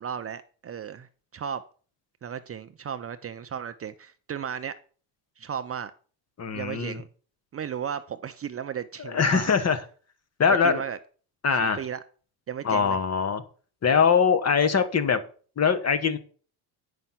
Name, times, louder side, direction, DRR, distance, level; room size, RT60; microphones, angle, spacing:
voice 1, 0.0-1.6 2.2-4.7 5.4-5.9 6.5-7.1 7.5-9.5 10.5-11.0 11.5-12.0 12.5-13.0, right 8 dB, 30° right, 0.6 m, -35 dB
voice 2, 6.4-7.0 9.0-9.8 10.4-10.8 11.4-11.8 12.6-13.4 13.8-15.2 15.6-16.2, left 6 dB, 35° left, 1.3 m, -22 dB
9.4 x 5.5 x 5.8 m
cardioid pair, 100°, 47 cm